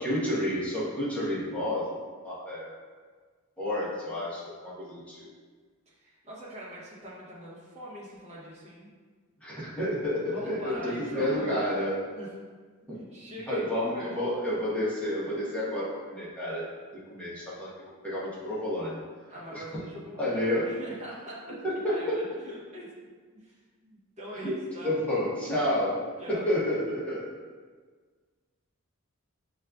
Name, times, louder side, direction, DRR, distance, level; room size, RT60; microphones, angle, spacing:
voice 1, 0.0-1.9 2.2-2.7 3.6-5.3 9.4-11.9 12.9-13.0 13.5-16.7 17.1-17.7 18.0-19.0 19.5-19.8 20.2-20.7 21.6-22.2 24.3-27.3, left 1 dB, 5° left, -9 dB, 0.9 m, -30 dB
voice 2, 5.9-8.9 10.2-11.6 12.2-12.3 12.9-14.2 19.3-25.0 26.2-26.5, equal, 30° right, -6 dB, 1.0 m, -42 dB
6.2 x 2.4 x 2.3 m, 1.5 s
head